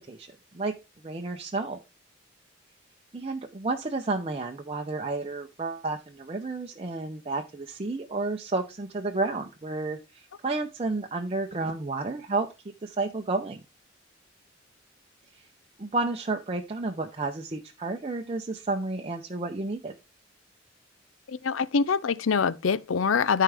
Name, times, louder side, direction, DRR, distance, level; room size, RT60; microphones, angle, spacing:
voice 1, 1.0-1.8 3.1-12.5 12.8-13.6 15.3-15.5 15.8-19.9, right 3 dB, 30° right, 0.7 m, -31 dB
voice 2, 21.3-23.4, left 5 dB, 85° left, 0.5 m, -24 dB
13.5 x 4.6 x 3.5 m
head